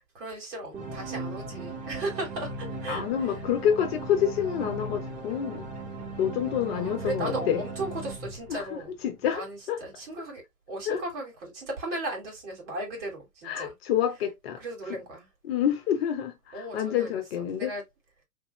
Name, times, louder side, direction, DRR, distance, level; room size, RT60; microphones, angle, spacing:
voice 1, 0.1-3.0 6.7-8.9 9.3-10.4 10.7-13.7 14.6-15.3 16.5-17.8, right 2 dB, 55° right, 2.6 m, -36 dB
sound 1, 0.7-9.2, right 2 dB, 20° right, 0.8 m, -38 dB
voice 2, 2.9-5.7 6.2-7.6 8.5-9.8 10.9-11.0 13.4-14.6 15.4-17.7, left 9 dB, 45° left, 1.0 m, -28 dB
3.6 x 2.8 x 2.9 m
hypercardioid pair, 120°, 43 cm